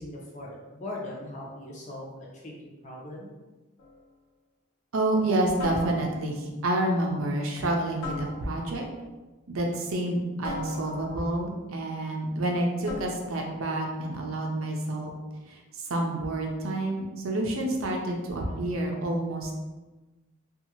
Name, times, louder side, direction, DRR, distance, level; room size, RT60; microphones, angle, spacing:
voice 1, 0.0-2.1 2.3-2.5 2.8-3.3, left 1 dB, 35° left, -4 dB, 0.6 m, -39 dB
sound 1, 3.8-4.1 5.6-6.4 8.0-8.8 10.4-11.4 12.9-13.4, left 3 dB, 75° left, 0.8 m, -39 dB
voice 2, 4.9-8.9 9.5-15.1 15.5-19.6, right 1 dB, 80° right, 1 dB, 0.5 m, -28 dB
2.7 x 2.4 x 2.8 m, 1.2 s
head